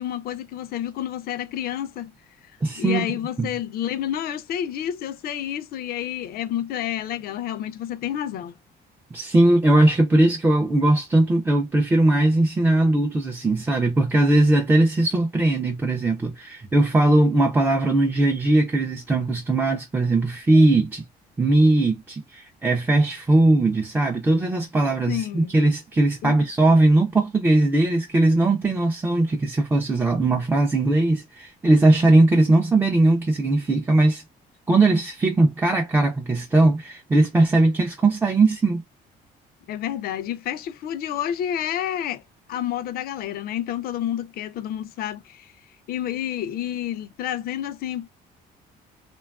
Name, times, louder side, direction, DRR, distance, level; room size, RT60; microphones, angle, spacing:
voice 1, 0.0-2.1 2.8-8.5 25.1-25.6 26.2-26.4 39.7-42.2 42.5-45.5 45.9-48.1, left 11 dB, 60° left, 0.4 m, -29 dB
voice 2, 2.6-3.5 9.1-21.0 21.4-34.2 34.7-38.8, right 2 dB, 10° right, 0.3 m, -19 dB
2.9 x 2.2 x 2.3 m
cardioid pair, 160°, 18 cm